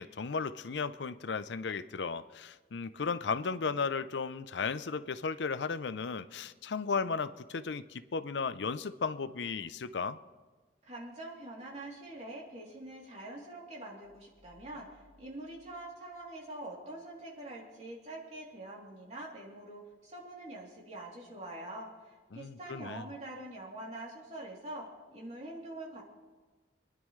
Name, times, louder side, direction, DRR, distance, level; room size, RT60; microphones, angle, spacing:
voice 1, 0.0-10.2 22.3-23.0, left 5 dB, 80° left, 13 dB, 0.6 m, -35 dB
voice 2, 10.8-26.0, right 1 dB, 40° right, -3 dB, 3.1 m, -45 dB
sound 1, 14.0-16.6, left 1 dB, 10° left, 2.5 m, -66 dB
26.5 x 10.5 x 3.2 m, 1.3 s
head